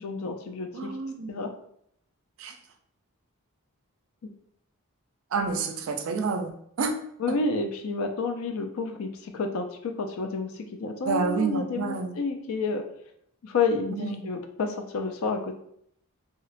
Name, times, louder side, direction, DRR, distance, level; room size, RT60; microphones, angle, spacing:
voice 1, 0.0-0.9 1.3-1.5 7.2-12.8 13.4-15.5, left 4 dB, 65° left, 6 dB, 0.3 m, -30 dB
voice 2, 0.7-1.3 2.4-2.5 5.3-6.9 11.1-12.1 13.9-14.3, right 4 dB, 65° right, 6 dB, 0.4 m, -29 dB
2.7 x 2.1 x 2.4 m, 0.69 s
head